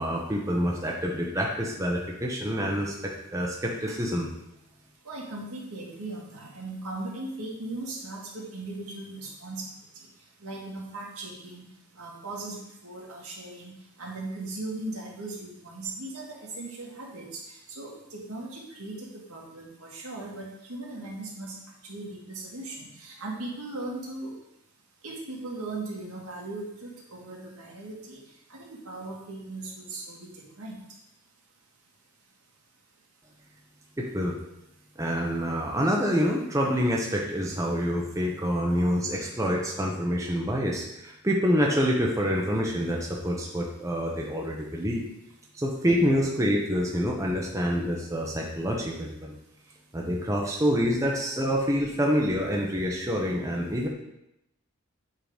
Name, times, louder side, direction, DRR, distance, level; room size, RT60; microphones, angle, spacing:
voice 1, 0.0-4.3 34.0-34.3 35.0-45.0 45.5-49.3 49.9-53.9, equal, 15° right, -2 dB, 0.8 m, -27 dB
voice 2, 5.1-9.7 10.4-11.7 12.0-12.6 12.8-16.3 16.6-17.4 17.7-21.5 21.8-24.3 25.0-28.2 28.5-30.3 30.6-30.7, right 2 dB, 85° right, -3 dB, 1.9 m, -38 dB
7.9 x 3.8 x 5.0 m, 0.84 s
head